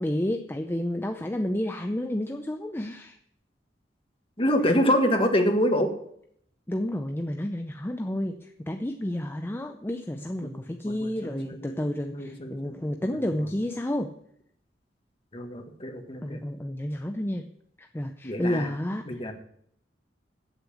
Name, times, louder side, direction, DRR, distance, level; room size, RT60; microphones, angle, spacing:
voice 1, 0.0-3.1 6.7-14.1 16.2-17.5 17.8-19.3, left 1 dB, 15° left, 5 dB, 0.5 m, -30 dB
voice 2, 4.4-5.9 10.4-10.5 10.9-11.7 12.1-12.7 15.3-16.4 18.2-18.7 19.1-19.3, equal, 30° left, 4 dB, 1.6 m, -26 dB
8.1 x 8.1 x 8.4 m, 0.68 s
head